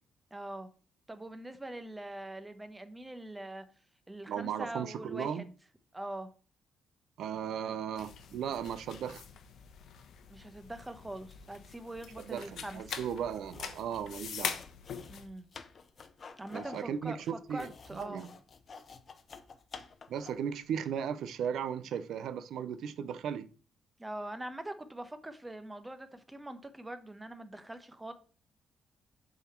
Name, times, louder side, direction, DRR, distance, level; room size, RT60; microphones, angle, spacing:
voice 1, 0.3-0.7 1.1-3.6 4.1-5.5 5.9-6.3 10.3-12.8 15.1-15.5 16.4-18.3 24.0-28.1, right 1 dB, 15° right, 0.9 m, -43 dB
voice 2, 4.3-5.4 7.2-9.2 12.3-14.6 16.5-18.3 20.1-23.5, right 8 dB, 75° right, 0.5 m, -36 dB
sound 1, 8.0-15.3, left 7 dB, 70° left, 0.9 m, -43 dB
sound 2, 13.4-20.5, left 5 dB, 40° left, 0.7 m, -51 dB
6.8 x 4.0 x 4.4 m
cardioid pair, 90°, 0 cm